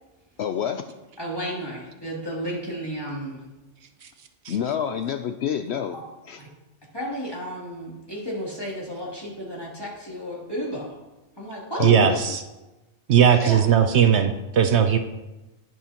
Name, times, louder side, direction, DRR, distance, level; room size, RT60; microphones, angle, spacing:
voice 1, 0.4-0.8 4.5-6.0 6.3-6.4 11.8-12.3 13.3-13.5, left 8 dB, 65° left, 0.8 m, -28 dB
voice 2, 1.2-3.5 5.9-6.0 6.4-6.5 6.9-11.0 11.4-11.9 13.4-13.6, equal, 20° left, 2.9 m, -33 dB
voice 3, 11.8-12.4 13.1-15.0, right 8 dB, 70° right, 0.9 m, -18 dB
12.0 x 9.8 x 2.9 m
omnidirectional pair, 1.2 m